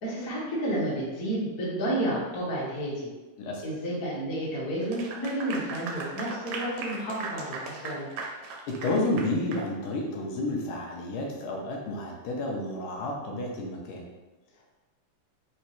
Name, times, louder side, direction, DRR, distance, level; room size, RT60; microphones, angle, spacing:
voice 1, 0.0-3.1 3.6-8.1, right 1 dB, 65° left, -7 dB, 0.8 m, -31 dB
Clapping / Applause, 4.8-9.7, right 4 dB, 80° right, 1.6 m, -38 dB
voice 2, 8.8-14.0, left 2 dB, 85° left, -1 dB, 2.2 m, -30 dB
5.5 x 3.1 x 2.9 m, 1.1 s
omnidirectional pair, 3.7 m